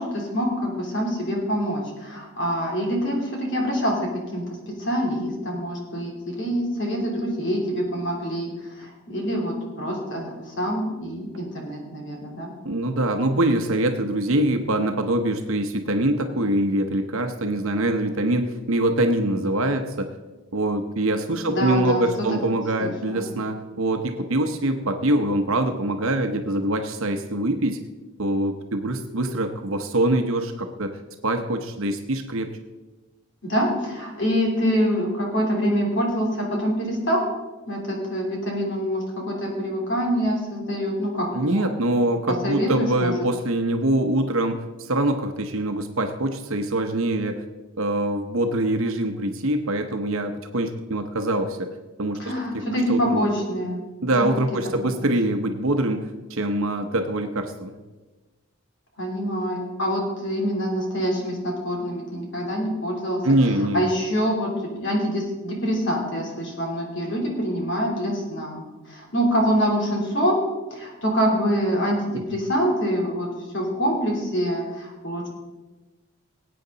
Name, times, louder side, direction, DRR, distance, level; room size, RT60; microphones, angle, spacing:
voice 1, 0.0-4.0 4.3-4.4 4.8-12.5 21.5-22.0 22.3-22.4 22.8-23.3 33.4-37.2 37.7-41.7 42.4-43.1 52.2-53.8 54.1-54.3 54.8-54.9 59.0-63.2 63.7-68.6 68.9-70.4 70.7-73.3 73.5-75.3, equal, 55° left, -1 dB, 3.3 m, -25 dB
voice 2, 12.6-20.1 20.5-27.8 28.2-32.5 41.3-47.4 47.8-51.7 52.0-52.3 52.9-53.2 54.0-57.8 63.2-63.9 72.1-72.2, right 1 dB, 70° right, 6 dB, 0.9 m, -24 dB
19.0 x 8.6 x 4.0 m, 1.2 s
head